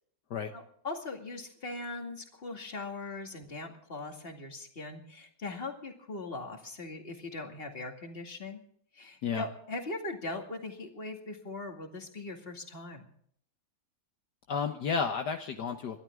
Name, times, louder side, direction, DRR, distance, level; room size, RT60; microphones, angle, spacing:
voice 1, 0.5-8.6 8.9-13.1, left 2 dB, 30° left, 3 dB, 2.4 m, -40 dB
voice 2, 14.5-16.0, left 6 dB, 65° left, 5 dB, 1.6 m, -32 dB
28.5 x 12.5 x 3.7 m, 0.63 s
omnidirectional pair, 2.0 m